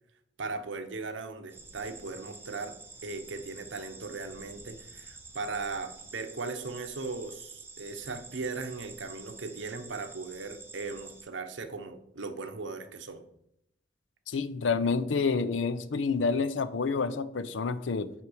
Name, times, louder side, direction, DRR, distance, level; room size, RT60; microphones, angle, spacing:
voice 1, 0.4-13.2, right 3 dB, 80° right, 8 dB, 0.9 m, -38 dB
sound 1, 1.5-11.2, right 3 dB, 10° right, 0.8 m, -48 dB
voice 2, 14.3-18.1, left 4 dB, 85° left, 14 dB, 0.6 m, -28 dB
5.8 x 4.6 x 6.2 m, 0.76 s
head